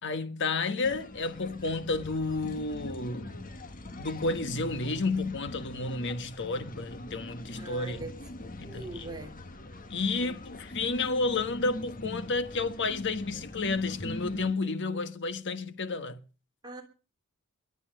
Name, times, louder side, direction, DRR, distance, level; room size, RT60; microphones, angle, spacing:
voice 1, 0.0-3.5 4.0-8.0 8.4-9.1 9.9-16.2, left 3 dB, 55° left, 1.3 m, -31 dB
sound 1, 0.8-14.5, left 1 dB, 40° left, 1.5 m, -42 dB
voice 2, 7.6-8.1 8.6-9.4 10.2-10.3 16.6-16.8, right 3 dB, 20° right, 3.1 m, -41 dB
22.0 x 8.3 x 6.6 m
head